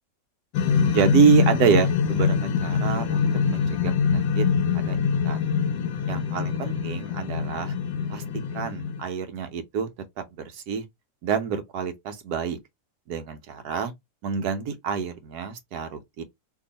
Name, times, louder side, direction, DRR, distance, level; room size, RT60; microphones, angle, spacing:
sound 1, 0.5-9.0, left 6 dB, 85° left, 1.4 m, -24 dB
voice 1, 0.9-4.5 4.7-5.0 5.2-5.5 6.1-7.7 8.1-8.2 8.5-9.9 10.2-10.8 11.2-12.6 13.1-13.9 14.2-16.2, right 7 dB, 65° right, 1.2 m, -26 dB
3.0 x 2.7 x 3.9 m
omnidirectional pair, 2.0 m